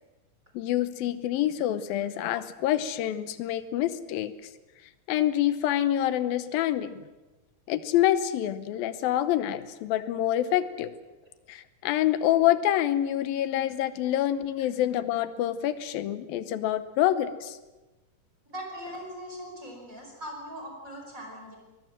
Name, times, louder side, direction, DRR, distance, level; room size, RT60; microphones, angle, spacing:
voice 1, 0.5-4.3 5.1-7.0 7.7-10.9 11.5-17.6, left 12 dB, 90° left, 13 dB, 2.8 m, -26 dB
voice 2, 18.5-21.6, equal, 20° right, 1 dB, 5.7 m, -40 dB
23.0 x 19.5 x 7.6 m, 1.1 s
omnidirectional pair, 4.1 m